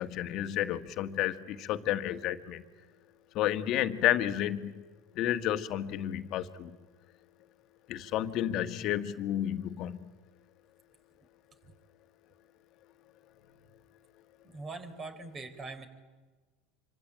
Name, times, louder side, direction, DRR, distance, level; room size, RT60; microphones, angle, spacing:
voice 1, 0.0-2.6 3.3-4.8 5.1-6.8 7.9-10.1, left 12 dB, 55° left, 10 dB, 1.6 m, -31 dB
voice 2, 14.4-15.9, right 3 dB, 30° right, 8 dB, 4.6 m, -42 dB
26.5 x 25.0 x 8.9 m, 1.3 s
hypercardioid pair, 80°, 0 cm